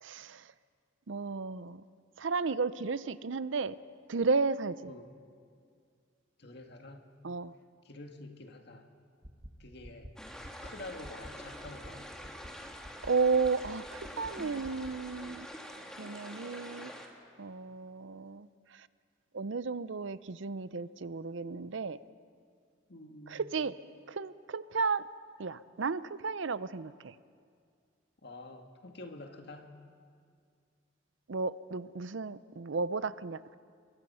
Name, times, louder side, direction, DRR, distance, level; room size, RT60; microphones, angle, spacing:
voice 1, 0.0-0.4 1.1-1.8 2.2-3.7 4.1-4.9 7.2-7.5 13.0-15.5 16.0-16.9 17.4-18.5 19.3-22.0 23.3-23.7 24.1-25.0 25.4-27.1 31.3-33.6, right 4 dB, 75° right, 16 dB, 0.6 m, -33 dB
voice 2, 6.4-7.1 7.8-8.9 9.6-10.2 10.6-12.1 22.9-23.6 28.2-29.8, left 2 dB, 55° left, 4 dB, 2.0 m, -48 dB
sound 1, 9.2-9.5 9.8-10.1 10.4-10.7 11.0-11.3 11.6-11.9 12.2-12.5 12.8-13.1 13.4-13.7 14.0-14.3 14.6-14.9, equal, 35° right, 1.9 m, -48 dB
sound 2, 10.2-17.1, equal, 5° left, 2.0 m, -46 dB
28.0 x 22.5 x 5.6 m, 2.2 s
head